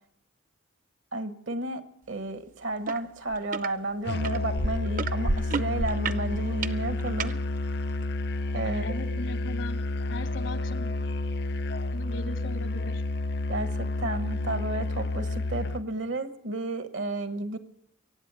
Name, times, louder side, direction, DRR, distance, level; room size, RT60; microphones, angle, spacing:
voice 1, 1.1-1.8 2.1-7.3 8.5-8.8 13.5-17.6, right 2 dB, 70° right, 9 dB, 1.2 m, -32 dB
sound 1, 2.9-3.0 3.3-3.7 4.2-7.3 8.0-8.1, right 4 dB, 40° right, 0.5 m, -30 dB
Musical instrument, 4.1-15.9, left 2 dB, 55° left, 0.6 m, -30 dB
voice 2, 8.6-9.8 10.1-10.9 11.9-13.0, left 1 dB, 70° left, 10 dB, 1.0 m, -38 dB
23.5 x 8.7 x 6.9 m, 0.74 s
head